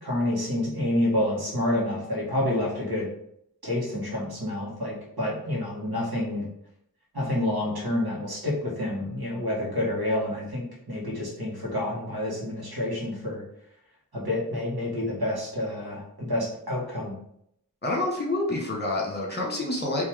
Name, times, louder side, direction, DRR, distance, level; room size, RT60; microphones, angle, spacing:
voice 1, 0.0-3.1 3.6-6.5 7.1-13.4 14.1-17.1, left 1 dB, 80° right, -4 dB, 1.8 m, -28 dB
voice 2, 17.8-20.0, left 2 dB, 25° left, -1 dB, 1.5 m, -28 dB
4.5 x 3.2 x 3.6 m, 0.73 s
wide cardioid pair, 55°, 37 cm